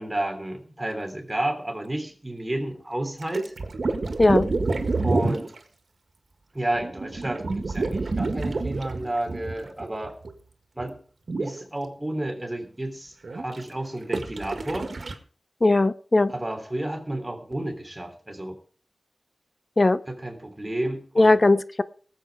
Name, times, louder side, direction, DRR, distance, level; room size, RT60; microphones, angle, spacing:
voice 1, 0.0-3.5 5.0-5.5 6.5-10.1 10.7-11.0 11.4-14.9 16.3-18.5 20.1-21.3, right 1 dB, 20° right, 3 dB, 3.3 m, -31 dB
sound 1, 3.2-5.6 6.7-10.3 10.8-10.9 11.3-11.6 13.2-13.6 14.1-15.1, right 3 dB, 85° right, 1.8 m, -28 dB
voice 2, 15.6-16.3 19.8-20.0 21.2-21.8, left 2 dB, 45° left, 14 dB, 0.6 m, -18 dB
19.0 x 8.0 x 4.9 m, 0.43 s
wide cardioid pair, 65°, 0 cm